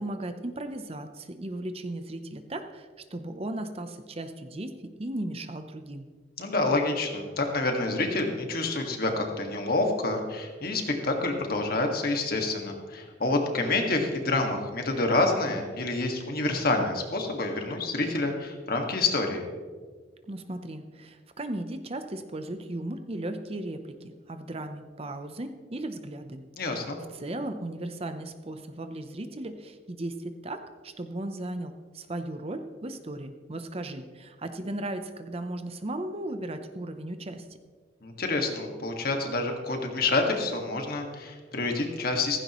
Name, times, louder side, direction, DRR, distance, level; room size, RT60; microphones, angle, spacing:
voice 1, 0.0-6.1 20.3-26.4 26.7-26.8 27.1-37.5, right 1 dB, 30° right, 8 dB, 0.7 m, -36 dB
voice 2, 6.4-19.4 26.6-27.0 38.0-42.4, left 2 dB, 50° left, 3 dB, 1.8 m, -28 dB
15.5 x 15.0 x 3.1 m, 1.5 s
head